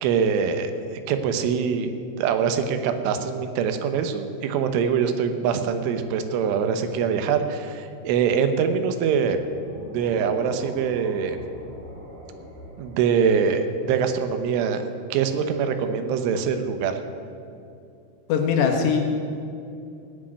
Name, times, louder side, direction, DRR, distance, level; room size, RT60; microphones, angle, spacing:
voice 1, 0.0-1.9 2.2-9.4 9.9-11.4 12.8-14.8 15.1-17.0, right 6 dB, 90° right, 8 dB, 3.5 m, -24 dB
sound 1, 9.3-14.5, equal, 50° right, 6.2 m, -43 dB
voice 2, 18.3-19.0, left 6 dB, 70° left, 2 dB, 3.3 m, -20 dB
17.5 x 6.4 x 9.6 m, 2.5 s
omnidirectional pair, 5.4 m